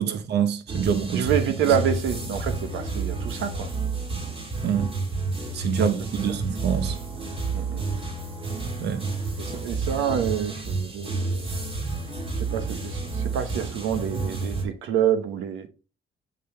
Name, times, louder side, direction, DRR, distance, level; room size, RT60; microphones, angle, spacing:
voice 1, 0.0-1.3 4.6-4.9 5.5-7.0 8.8-9.0, right 8 dB, 60° right, 0.7 m, -26 dB
sound 1, 0.7-14.6, right 3 dB, 25° right, 2.1 m, -30 dB
voice 2, 1.1-3.7 5.8-5.9 6.3-6.4 7.5-7.8 9.4-11.5 12.4-15.7, right 8 dB, 90° right, 0.9 m, -27 dB
8.4 x 3.9 x 3.2 m
cardioid pair, 90°, 20 cm